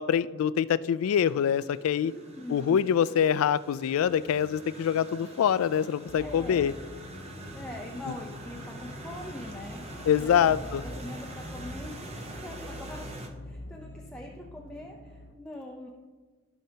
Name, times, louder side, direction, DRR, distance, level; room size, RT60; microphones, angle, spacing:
voice 1, 0.0-2.1 2.5-6.7 10.1-10.8, left 8 dB, 80° left, 16 dB, 0.3 m, -25 dB
sound 1, 1.0-13.3, right 2 dB, 30° right, 0.8 m, -45 dB
voice 2, 2.0-2.8 6.2-6.8 7.5-9.9 10.2-10.6 10.8-13.1 13.4-15.9, left 1 dB, 5° left, -1 dB, 0.5 m, -43 dB
sound 2, 6.1-15.3, left 1 dB, 55° left, 0.7 m, -44 dB
15.0 x 5.6 x 2.8 m, 1.4 s
head